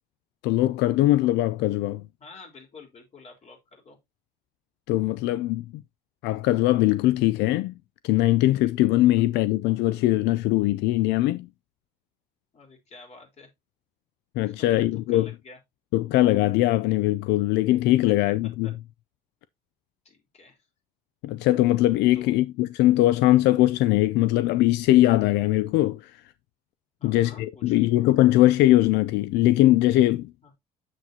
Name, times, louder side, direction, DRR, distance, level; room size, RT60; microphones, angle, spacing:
voice 1, 0.4-2.0 4.9-5.8 6.2-7.7 8.0-11.5 14.4-15.3 15.9-18.7 21.2-26.1 27.0-30.3, left 16 dB, 85° left, 0.4 m, -21 dB
voice 2, 2.2-4.0 12.5-13.5 14.5-15.6 18.6-18.7 20.0-20.6 22.1-22.4 27.0-27.9 30.4-30.5, left 4 dB, 40° left, 4.0 m, -49 dB
7.8 x 7.3 x 2.8 m
cardioid pair, 110°, 17 cm